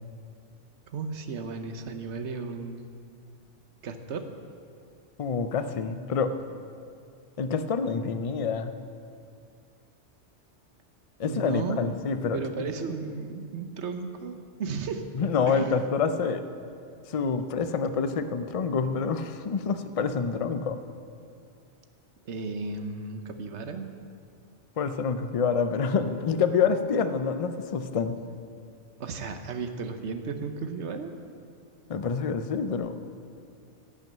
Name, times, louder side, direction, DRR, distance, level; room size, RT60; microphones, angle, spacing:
voice 1, 0.9-2.8 3.8-4.2 11.2-11.9 12.3-15.0 15.5-15.8 22.3-23.9 29.0-31.1, right 4 dB, 70° right, 7 dB, 1.2 m, -34 dB
voice 2, 5.2-6.3 7.4-8.7 11.2-12.4 15.1-16.4 17.1-20.8 24.8-28.2 31.9-32.9, left 5 dB, 40° left, 10 dB, 0.5 m, -27 dB
16.0 x 6.2 x 7.3 m, 2.3 s
omnidirectional pair, 1.2 m